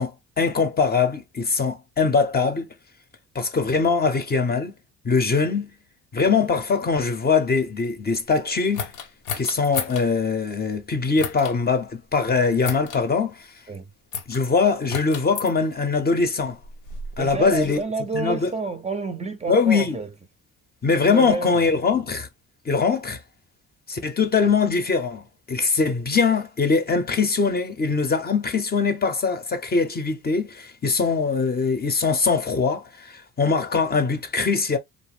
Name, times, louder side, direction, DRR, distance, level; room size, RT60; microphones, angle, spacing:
voice 1, 0.0-2.7 3.3-4.7 5.0-5.7 6.1-8.9 9.3-13.5 14.3-16.6 17.2-17.8 18.1-18.5 19.5-20.0 20.8-22.3 22.7-23.2 23.9-34.8, left 4 dB, 30° left, 0.6 m, -22 dB
sound 1, 8.7-10.1 11.2-11.6 12.6-13.0 14.1-14.5 14.9-15.5 16.4-17.8, left 6 dB, 80° left, 0.7 m, -33 dB
voice 2, 17.2-20.1 21.0-21.6, right 3 dB, 20° right, 0.5 m, -29 dB
2.5 x 2.0 x 3.3 m
cardioid pair, 90°, 30 cm